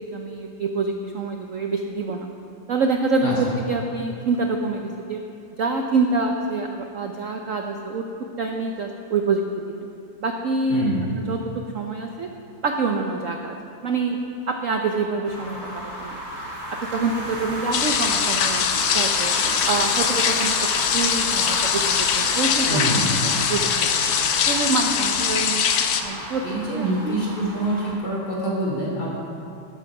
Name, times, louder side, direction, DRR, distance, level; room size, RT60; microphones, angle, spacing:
voice 1, 0.1-2.3 2.7-5.2 5.6-8.1 8.4-9.4 9.7-9.9 10.2-10.9 11.3-12.3 12.6-13.6 13.8-14.2 14.5-16.2 16.8-18.6 18.9-19.3 19.7-20.5 20.9-23.0 23.5-23.7 24.0-24.1 24.5-25.6 26.0-27.2, right 3 dB, 80° right, 3 dB, 0.7 m, -26 dB
voice 2, 10.7-11.1 22.7-23.1 25.2-25.3 26.4-29.1, right 1 dB, 45° left, -4 dB, 3.7 m, -25 dB
sound 1, 15.2-27.9, equal, 40° right, 3.0 m, -31 dB
sound 2, 17.7-26.0, left 8 dB, 65° left, 1.2 m, -22 dB
13.0 x 13.0 x 4.8 m, 2.7 s
omnidirectional pair, 2.4 m